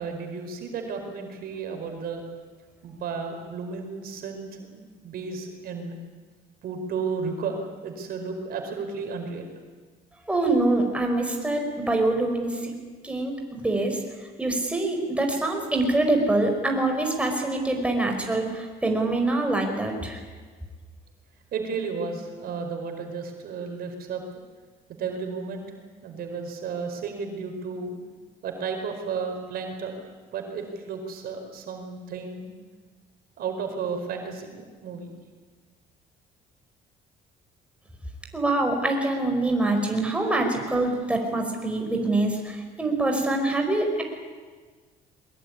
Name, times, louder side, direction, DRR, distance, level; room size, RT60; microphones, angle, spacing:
voice 1, 0.0-2.2 2.8-5.9 6.6-7.6 7.8-9.4 21.5-24.2 25.0-25.6 26.0-27.9 28.4-29.9 30.3-32.5 33.4-35.1 40.6-40.7, right 5 dB, 65° right, 4 dB, 4.7 m, -33 dB
voice 2, 10.3-12.7 13.0-14.0 14.4-20.2 38.3-44.0, right 2 dB, 5° right, 2 dB, 5.1 m, -25 dB
22.0 x 21.5 x 9.8 m, 1.5 s
cardioid pair, 110°, 17 cm